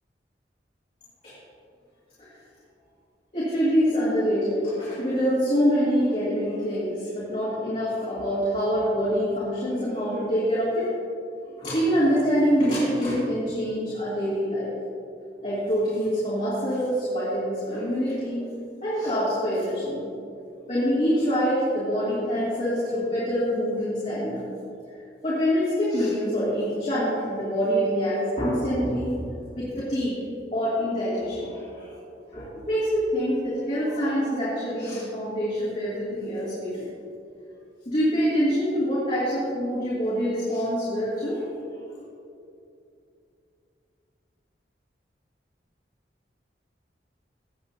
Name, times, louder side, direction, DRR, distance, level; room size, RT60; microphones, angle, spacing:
voice 1, 3.3-10.8 11.4-14.7 15.4-18.4 18.8-20.0 20.7-24.4 25.2-29.3 29.5-30.2 30.5-31.9 32.3-36.9 37.9-41.5, equal, 40° left, -10 dB, 2.6 m, -25 dB
17.0 x 8.0 x 2.8 m, 2.6 s
head